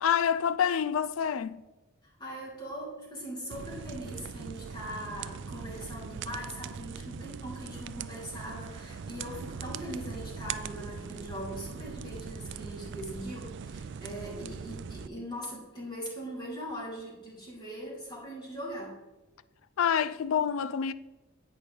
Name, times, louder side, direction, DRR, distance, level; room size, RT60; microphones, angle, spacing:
voice 1, 0.0-1.6 19.8-20.9, left 8 dB, 85° left, 0.4 m, -27 dB
voice 2, 2.0-18.9, equal, 20° left, 3.4 m, -41 dB
sound 1, 3.5-15.1, right 6 dB, 60° right, 0.4 m, -41 dB
10.5 x 8.8 x 3.5 m
head